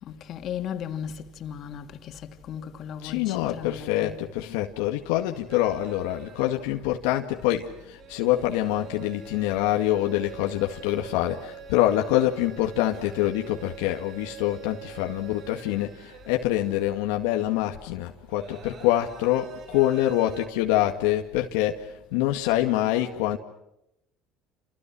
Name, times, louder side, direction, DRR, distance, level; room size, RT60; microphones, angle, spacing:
voice 1, 0.0-4.2, left 8 dB, 50° left, 2.9 m, -36 dB
voice 2, 3.0-23.4, left 14 dB, 90° left, 1.9 m, -25 dB
sound 1, 5.5-6.6 7.0-17.0 17.3-17.4 18.3-20.5, right 9 dB, 50° right, 3.8 m, -45 dB
29.0 x 28.5 x 6.2 m
supercardioid pair, 110°, 0 cm